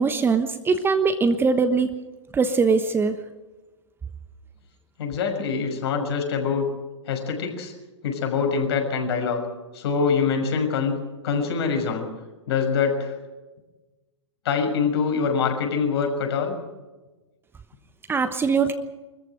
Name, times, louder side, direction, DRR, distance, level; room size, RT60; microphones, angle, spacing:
voice 1, 0.0-1.9 2.3-3.2 18.1-18.7, right 4 dB, 15° right, 9 dB, 1.2 m, -21 dB
voice 2, 5.0-6.7 7.1-7.7 8.0-9.4 9.7-11.0 11.2-12.1 12.5-13.2 14.4-16.6, left 5 dB, 55° left, 4 dB, 6.3 m, -24 dB
24.5 x 14.5 x 9.1 m, 1.2 s
figure-of-eight pair, 110°, 16 cm